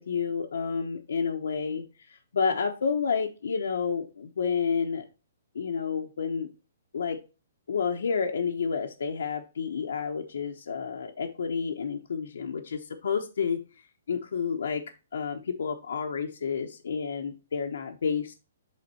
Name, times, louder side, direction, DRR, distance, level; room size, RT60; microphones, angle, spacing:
voice 1, 0.0-5.0 5.5-6.5 6.9-7.2 7.7-13.8 14.1-14.8 15.1-18.3, left 6 dB, 80° left, 2 dB, 1.0 m, -30 dB
8.3 x 3.6 x 4.3 m, 0.31 s
hypercardioid pair, 180°, 0 cm